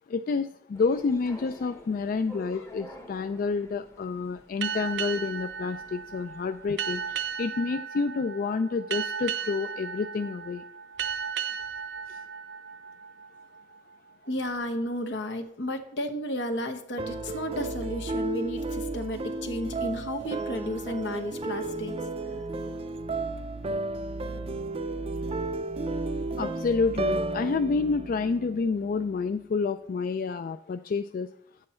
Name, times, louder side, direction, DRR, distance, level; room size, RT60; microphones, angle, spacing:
voice 1, 0.1-10.6 12.1-12.2 26.4-31.3, left 4 dB, 50° left, 10 dB, 0.3 m, -29 dB
sound 1, 0.7-7.3, equal, 15° left, 0.9 m, -49 dB
sound 2, 4.6-13.8, right 7 dB, 75° right, 0.6 m, -35 dB
voice 2, 14.2-22.0, left 1 dB, 75° left, 5 dB, 1.1 m, -33 dB
sound 3, 17.0-29.1, right 2 dB, 35° right, 0.5 m, -33 dB
8.7 x 7.5 x 4.3 m, 0.69 s
head